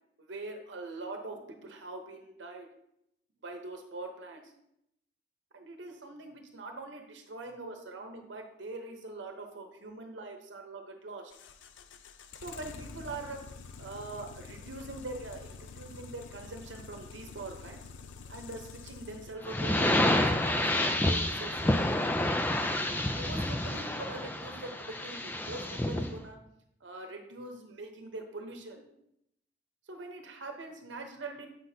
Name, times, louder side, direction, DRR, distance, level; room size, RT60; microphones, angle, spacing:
voice 1, 0.2-2.7 3.4-4.5 5.5-11.3 12.4-13.4 13.8-17.9 18.3-19.9 20.3-21.8 22.5-26.4 26.8-28.9 29.9-31.5, right 2 dB, 80° right, 4 dB, 0.9 m, -43 dB
sound 1, 11.3-19.3, left 5 dB, 85° left, 0.5 m, -47 dB
sound 2, 19.4-26.1, left 1 dB, 10° left, 0.4 m, -29 dB
7.7 x 6.0 x 2.7 m, 0.78 s
head